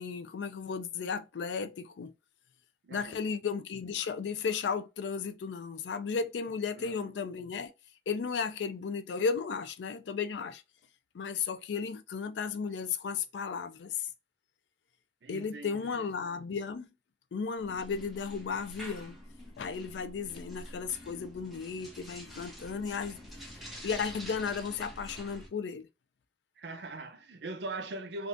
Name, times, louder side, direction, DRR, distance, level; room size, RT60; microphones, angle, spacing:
voice 1, 0.0-2.1 2.9-7.7 8.1-10.6 11.1-14.1 15.3-16.9 17.3-19.2 19.6-23.2 23.8-25.9, left 5 dB, 80° left, 0.4 m, -34 dB
voice 2, 2.8-3.3 6.8-7.4 15.2-16.1 26.6-28.3, right 2 dB, 75° right, 0.6 m, -41 dB
sound 1, 17.6-25.5, equal, ahead, 0.8 m, -47 dB
3.5 x 2.4 x 2.5 m
head